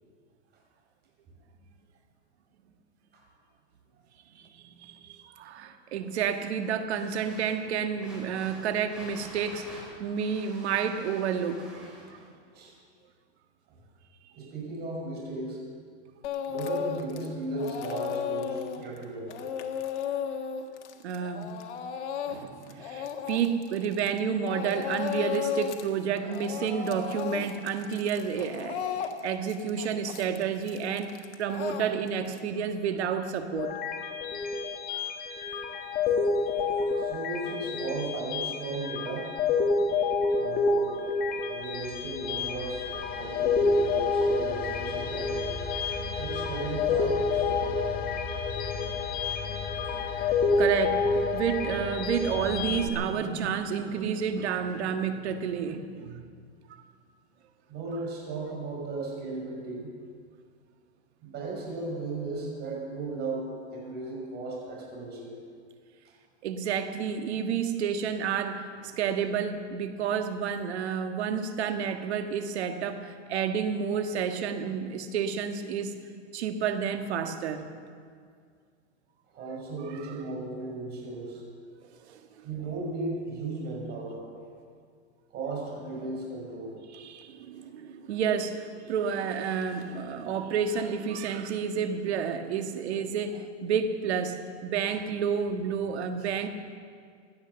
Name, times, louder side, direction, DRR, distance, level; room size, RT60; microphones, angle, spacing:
voice 1, 4.3-12.2 21.0-21.5 22.3-28.9 29.2-31.1 31.4-33.7 50.1-50.3 50.6-51.0 51.3-56.3 56.7-56.8 66.4-75.9 76.3-77.7 80.0-80.1 82.0-82.2 86.9-96.5, right 7 dB, 70° right, 7 dB, 1.6 m, -30 dB
sound 1, 6.9-12.3, equal, ahead, 4.9 m, -49 dB
voice 2, 14.4-15.6 16.5-19.5 34.2-34.4 35.9-36.1 36.7-39.3 40.3-40.9 41.5-42.9 43.2-45.4 46.2-47.5 57.7-59.9 61.2-65.4 79.3-81.4 82.4-84.3 85.3-86.8, right 3 dB, 30° right, -2 dB, 5.6 m, -36 dB
Speech / Crying sobbing, 16.2-17.3 17.6-24.2 24.5-25.9 26.2-32.4, left 8 dB, 75° left, 1.6 m, -34 dB
sound 2, 33.5-52.9, left 4 dB, 25° left, 1.6 m, -28 dB
17.0 x 12.0 x 6.9 m, 2.1 s
hypercardioid pair, 145°, 34 cm